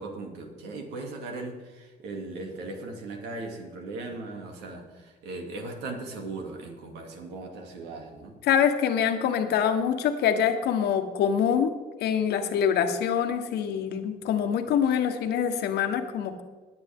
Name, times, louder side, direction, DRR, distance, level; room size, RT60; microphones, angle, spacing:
voice 1, 0.0-8.4 14.8-14.9, right 2 dB, 85° right, 2 dB, 2.7 m, -38 dB
voice 2, 8.4-11.7 12.0-16.4, left 8 dB, 75° left, 7 dB, 1.3 m, -25 dB
20.0 x 8.2 x 3.7 m, 1.4 s
cardioid pair, 110°, 17 cm